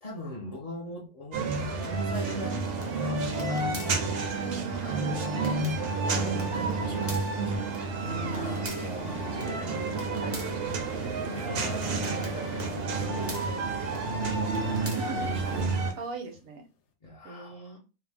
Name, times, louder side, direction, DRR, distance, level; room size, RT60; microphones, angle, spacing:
voice 1, 0.0-4.3 4.8-7.9 8.2-13.9 17.0-17.8, left 1 dB, 45° left, -4 dB, 0.5 m, -42 dB
sound 1, 1.3-15.9, right 3 dB, 60° right, 0.7 m, -31 dB
sound 2, 2.1-15.6, right 2 dB, 20° right, 0.3 m, -37 dB
sound 3, 8.3-12.9 13.9-16.4, left 5 dB, 65° left, 0.9 m, -49 dB
voice 2, 9.6-9.9 14.8-15.3 15.9-16.6 17.2-17.8, right 4 dB, 80° right, 5 dB, 1.1 m, -40 dB
2.6 x 2.1 x 3.3 m, 0.30 s
omnidirectional pair, 1.4 m